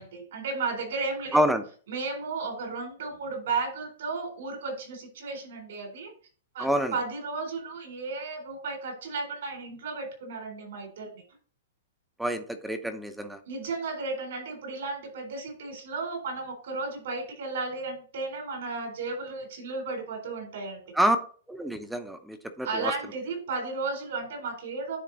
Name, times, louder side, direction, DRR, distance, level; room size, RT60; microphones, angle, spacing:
voice 1, 0.0-1.4 1.9-6.1 6.5-11.2 13.5-20.9 22.6-25.0, right 3 dB, 70° right, 3 dB, 3.7 m, -34 dB
voice 2, 1.3-1.6 6.6-6.9 12.2-13.4 20.9-21.2 21.5-22.9, equal, 5° right, 8 dB, 0.8 m, -27 dB
9.5 x 3.7 x 3.9 m, 0.43 s
hypercardioid pair, 140°, 0 cm